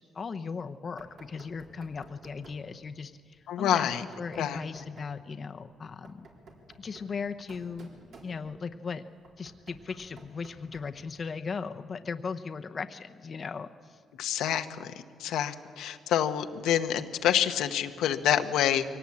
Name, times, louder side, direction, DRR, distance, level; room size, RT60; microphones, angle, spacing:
voice 1, 0.0-3.9 4.2-6.3 6.8-7.9 8.2-9.0 9.4-14.0, left 5 dB, 40° left, 8 dB, 0.8 m, -37 dB
Knock, 1.0-2.7 3.9-5.2 5.8-8.7 9.2-11.0, right 2 dB, 65° right, 4.1 m, -53 dB
voice 2, 3.5-4.0 4.4-4.6 14.2-14.9 15.2-18.8, left 10 dB, 85° left, 7 dB, 1.0 m, -27 dB
22.5 x 18.0 x 8.6 m, 2.1 s
cardioid pair, 90°, 0 cm